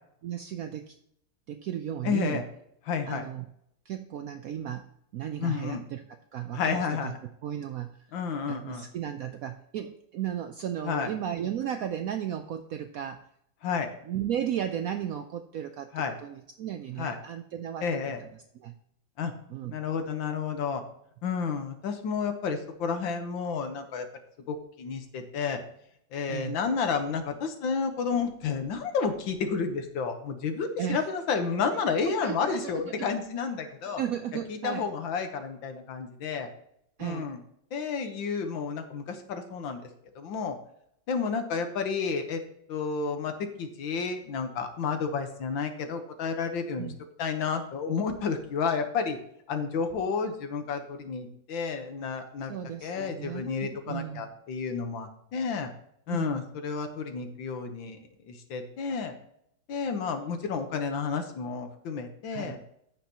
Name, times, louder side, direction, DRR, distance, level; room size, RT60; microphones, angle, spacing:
voice 1, 0.2-0.9 1.5-2.4 3.1-3.5 3.9-4.9 5.1-6.0 6.3-7.1 7.4-8.0 8.5-13.2 14.0-15.9 16.2-18.7 19.5-19.8 26.3-26.6 30.8-31.0 32.1-33.1 33.6-34.9 37.0-37.3 46.8-47.0 52.5-54.3 56.1-56.4 62.3-62.6, right 10 dB, 85° right, 7 dB, 0.7 m, -35 dB
voice 2, 2.0-2.4 2.9-3.2 5.4-5.8 6.5-7.2 8.1-8.8 10.8-11.1 13.6-13.9 15.9-16.1 17.0-17.2 17.8-18.2 19.2-19.3 19.7-20.8 21.2-24.0 24.5-25.6 26.1-34.0 34.5-36.5 37.0-37.4 37.7-39.8 40.1-40.6 41.1-42.4 42.7-43.3 43.6-46.9 47.2-49.2 49.5-52.6 52.8-55.7 56.1-58.0 58.3-59.1 59.7-62.6, left 5 dB, 75° left, 7 dB, 1.8 m, -31 dB
14.5 x 5.8 x 2.9 m, 0.73 s
omnidirectional pair, 2.1 m